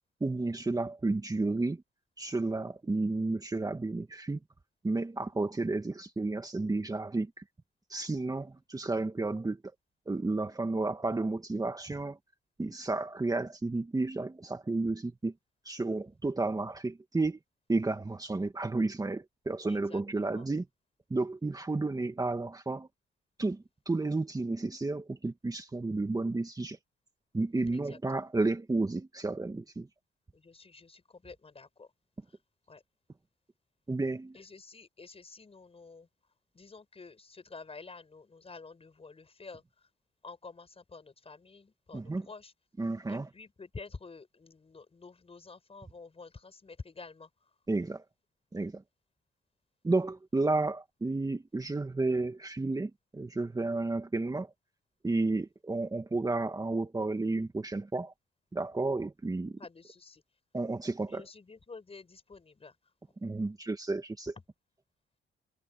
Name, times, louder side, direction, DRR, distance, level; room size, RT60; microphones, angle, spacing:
voice 1, 0.2-1.8 2.2-4.4 4.8-7.4 7.9-9.6 10.1-12.2 12.6-15.3 15.7-17.4 17.7-20.6 21.1-22.9 23.4-26.8 27.3-29.9 33.9-34.4 41.9-42.3 42.8-43.3 47.7-48.0 48.5-48.8 49.8-54.5 55.0-58.1 58.5-59.6 60.5-61.2 63.2-64.3, right 3 dB, 20° right, 2.0 m, -32 dB
voice 2, 19.7-20.5 27.7-28.0 30.3-31.9 32.2-32.4 32.7-32.8 34.3-36.1 36.5-39.9 40.2-42.5 43.1-47.5 59.6-60.2 61.1-62.9, left 4 dB, 30° left, 7.0 m, -50 dB
cardioid pair, 90°, 20 cm